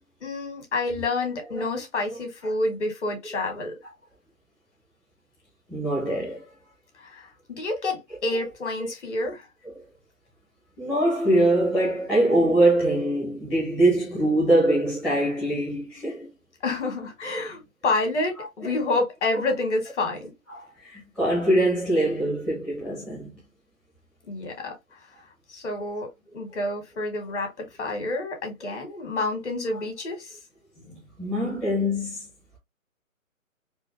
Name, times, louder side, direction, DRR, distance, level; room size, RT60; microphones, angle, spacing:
voice 1, 0.2-3.8 7.0-9.5 16.6-20.3 24.3-24.7 25.5-30.3 30.8-31.0, left 2 dB, 55° left, 2.1 m, -29 dB
voice 2, 5.7-6.5 8.8-8.9 9.6-9.8 10.8-16.3 18.4-18.7 19.3-19.4 20.5-23.3 26.5-26.6 29.7-29.8 31.2-32.3, right 1 dB, ahead, 0.7 m, -23 dB
4.3 x 2.6 x 2.8 m
figure-of-eight pair, 145°, 41 cm